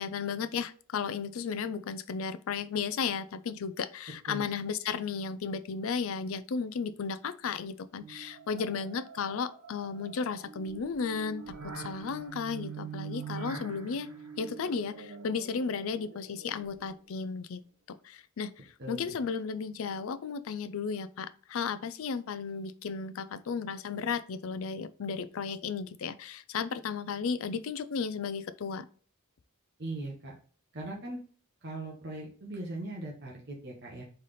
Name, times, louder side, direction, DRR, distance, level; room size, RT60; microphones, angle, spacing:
voice 1, 0.0-14.1 14.4-17.6 18.0-28.9, left 5 dB, 65° left, 0.4 m, -34 dB
sound 1, 8.0-17.1, right 5 dB, 80° right, 0.8 m, -45 dB
voice 2, 18.8-19.1 29.8-30.3 30.7-31.2 31.6-34.0, right 2 dB, 50° right, 1.0 m, -39 dB
4.1 x 3.3 x 3.9 m
head